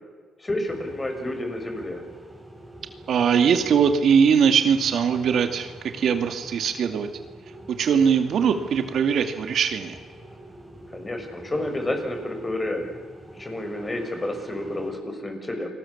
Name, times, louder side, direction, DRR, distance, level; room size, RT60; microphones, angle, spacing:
voice 1, 0.4-2.0 10.9-12.9 13.4-15.7, left 1 dB, 20° left, 4 dB, 6.6 m, -30 dB
sound 1, 0.7-15.0, right 1 dB, 10° right, 7.2 m, -46 dB
voice 2, 3.1-5.7 5.9-7.1 7.7-10.0, right 7 dB, 65° right, 8 dB, 2.2 m, -21 dB
28.5 x 20.5 x 7.2 m, 1.5 s
cardioid pair, 90°, 0 cm